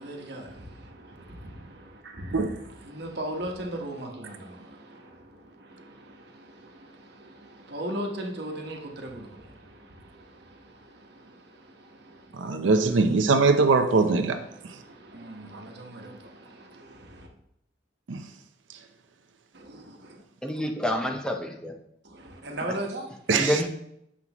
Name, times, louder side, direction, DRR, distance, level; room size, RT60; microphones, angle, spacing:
voice 1, 0.0-13.2 14.3-17.3 19.5-20.2 22.0-23.2, right 1 dB, 60° right, 1.2 m, -39 dB
voice 2, 12.3-14.4 18.1-18.2 23.3-23.6, right 4 dB, 90° right, 0.6 m, -21 dB
voice 3, 20.4-21.7 23.3-23.7, equal, 5° left, 0.5 m, -28 dB
7.5 x 5.9 x 2.9 m
head